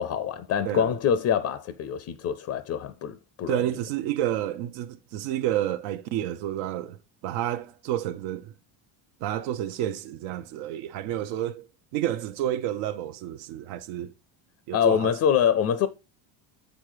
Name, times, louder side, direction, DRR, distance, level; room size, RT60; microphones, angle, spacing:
voice 1, 0.0-3.6 14.7-15.9, left 8 dB, 35° left, 0.4 m, -25 dB
voice 2, 3.5-7.0 7.2-8.5 9.2-11.7 11.9-14.1 14.7-15.1, right 12 dB, 90° right, 0.8 m, -30 dB
8.2 x 3.8 x 4.9 m
cardioid pair, 160°, 47 cm